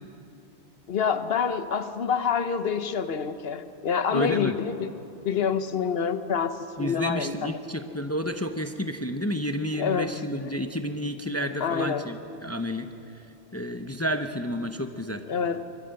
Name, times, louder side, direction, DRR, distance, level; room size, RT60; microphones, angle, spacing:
voice 1, 0.9-4.9 5.2-7.6 9.8-10.1 11.6-12.0 15.3-15.6, left 6 dB, 60° left, 11 dB, 1.1 m, -27 dB
voice 2, 4.1-4.5 6.8-12.9 13.5-15.2, equal, 15° left, 7 dB, 0.6 m, -30 dB
24.0 x 14.0 x 7.7 m, 2.8 s
omnidirectional pair, 1.2 m